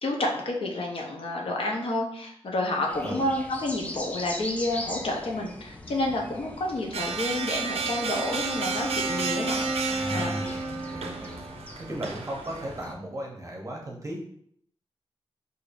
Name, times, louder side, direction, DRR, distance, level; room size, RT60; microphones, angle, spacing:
voice 1, 0.0-10.3, left 1 dB, 65° left, 0 dB, 0.7 m, -30 dB
sound 1, 2.9-12.9, left 1 dB, 15° left, 0.4 m, -41 dB
sound 2, 6.9-12.8, right 6 dB, 85° right, 0.4 m, -33 dB
Wind instrument woodwind instrument, 7.2-11.6, right 2 dB, 5° right, 1.3 m, -34 dB
voice 2, 9.9-11.4 11.8-14.2, equal, 30° right, -1 dB, 0.7 m, -36 dB
4.8 x 2.6 x 2.5 m, 0.67 s
wide cardioid pair, 145°, 10 cm